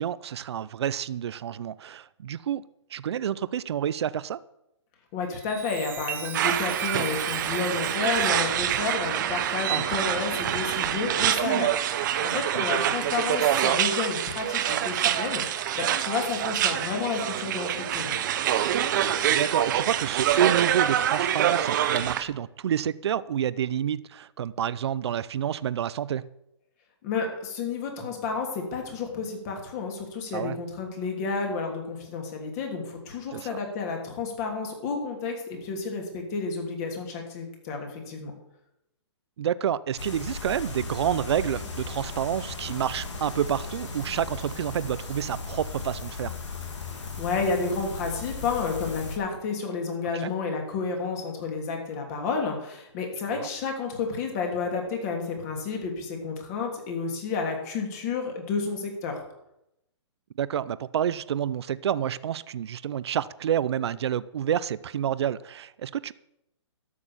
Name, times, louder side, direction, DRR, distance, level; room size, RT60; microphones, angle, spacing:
voice 1, 0.0-2.6 2.9-4.4 9.7-9.8 12.3-12.6 19.3-26.3 30.3-30.6 33.3-33.6 39.4-46.3 50.2-50.3 53.3-53.5 60.4-66.1, right 9 dB, 60° right, 17 dB, 0.6 m, -29 dB
voice 2, 5.1-18.2 27.0-38.3 46.9-59.2, left 4 dB, 35° left, 2 dB, 3.0 m, -31 dB
Chime, 5.2-11.2 11.8-12.1, right 11 dB, 10° right, 0.6 m, -40 dB
sound 1, 6.3-22.2, right 10 dB, 40° right, 0.9 m, -26 dB
sound 2, 40.0-49.2, left 4 dB, 85° left, 3.2 m, -36 dB
12.5 x 6.7 x 7.4 m, 0.85 s
hypercardioid pair, 150°, 15 cm